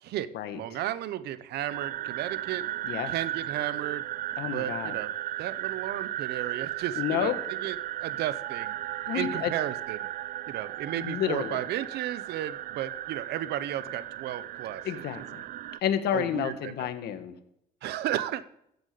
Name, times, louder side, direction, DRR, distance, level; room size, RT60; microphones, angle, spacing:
voice 1, 0.0-2.6 3.1-4.0 4.4-5.1 5.4-7.8 8.0-8.7 9.1-10.1 10.5-15.1 16.1-16.9 17.8-18.5, right 12 dB, 75° right, 15 dB, 0.8 m, -34 dB
sound 1, 1.7-15.8, right 13 dB, 55° right, 0.4 m, -35 dB
voice 2, 4.4-4.9 7.0-7.3 9.1-9.5 11.0-11.6 14.8-15.4 15.8-17.3, left 10 dB, 75° left, 9 dB, 1.4 m, -30 dB
14.0 x 8.1 x 6.8 m, 0.78 s
cardioid pair, 110°, 17 cm